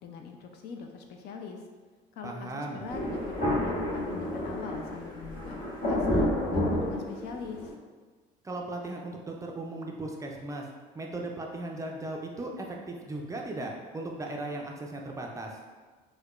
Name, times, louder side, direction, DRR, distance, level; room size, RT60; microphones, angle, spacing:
voice 1, 0.0-1.6 2.2-7.6, left 5 dB, 65° left, 3 dB, 0.5 m, -42 dB
voice 2, 2.2-2.8 8.4-10.7 10.9-15.6, right 2 dB, 20° right, 0 dB, 0.3 m, -37 dB
Thunder, 2.9-7.7, left 1 dB, 50° left, 1.1 m, -30 dB
4.6 x 2.2 x 2.4 m, 1.4 s
cardioid pair, 115°, 18 cm